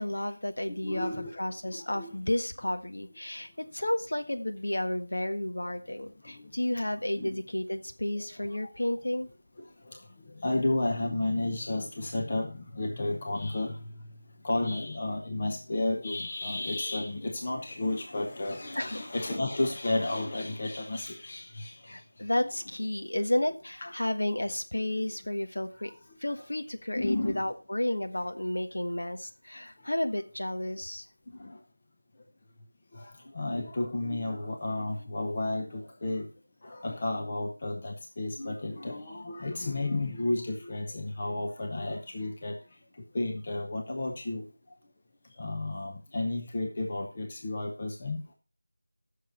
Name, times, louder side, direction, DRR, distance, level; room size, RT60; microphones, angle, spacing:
voice 1, 0.0-1.1 1.4-9.3 18.7-19.0 21.8-25.9 26.2-31.1, left 1 dB, 60° left, 6 dB, 1.5 m, -32 dB
voice 2, 0.8-1.3 1.7-2.1 6.4-6.5 7.2-7.4 10.4-13.8 14.4-21.7 23.8-23.9 26.9-27.4 31.4-31.5 33.0-33.1 33.3-36.3 36.6-42.6 43.1-44.4 45.4-48.2, left 2 dB, 20° left, 2 dB, 0.8 m, -32 dB
14.0 x 6.5 x 4.3 m, 0.35 s
figure-of-eight pair, 180°, 0 cm